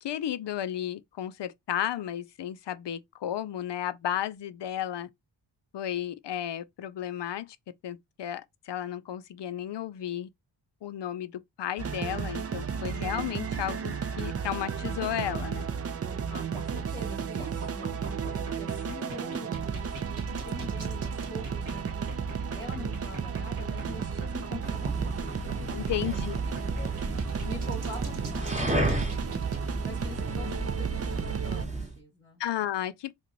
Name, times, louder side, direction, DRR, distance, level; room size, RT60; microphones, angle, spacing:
voice 1, 0.0-5.1 5.7-7.6 7.8-10.3 10.8-15.7 25.7-26.4 32.4-33.1, left 11 dB, 60° left, 0.5 m, -33 dB
sound 1, 11.8-31.6, right 6 dB, 30° right, 0.5 m, -33 dB
sound 2, 16.1-29.6, right 3 dB, 85° right, 1.3 m, -43 dB
voice 2, 16.3-21.9 22.5-25.5 26.0-26.2 26.8-28.8 29.8-32.4, left 2 dB, 10° left, 1.0 m, -44 dB
sound 3, 24.6-32.0, right 2 dB, 15° right, 0.9 m, -33 dB
3.0 x 2.5 x 3.9 m
cardioid pair, 75°, 48 cm